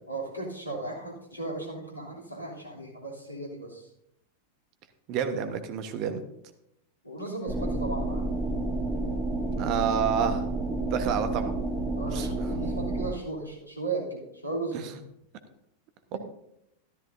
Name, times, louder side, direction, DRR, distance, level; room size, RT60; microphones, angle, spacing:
voice 1, 0.1-3.9 7.0-8.2 11.9-14.9 16.1-16.2, right 3 dB, 85° left, -3 dB, 3.2 m, -36 dB
voice 2, 5.1-6.2 9.5-10.4 10.9-11.5 12.1-12.8 14.7-14.9 16.1-16.2, right 7 dB, 40° right, 8 dB, 1.2 m, -29 dB
sound 1, 7.5-13.1, right 2 dB, 15° right, 2.2 m, -30 dB
13.5 x 13.0 x 2.7 m, 0.82 s
figure-of-eight pair, 90°, 0 cm